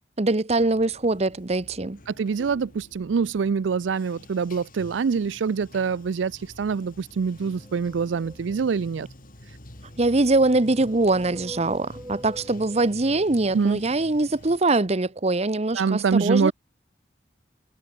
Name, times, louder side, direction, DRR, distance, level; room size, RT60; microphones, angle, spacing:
voice 1, 0.2-2.0 10.0-16.5, right 2 dB, 35° right, 0.9 m, -23 dB
Bathtub (filling or washing), 0.6-14.6, left 1 dB, 50° left, 4.0 m, -47 dB
voice 2, 2.1-9.1 13.5-13.8 15.7-16.5, right 5 dB, 80° right, 0.4 m, -25 dB
sound 1, 7.4-9.0 9.9-13.8, right 1 dB, 15° right, 1.8 m, -45 dB
head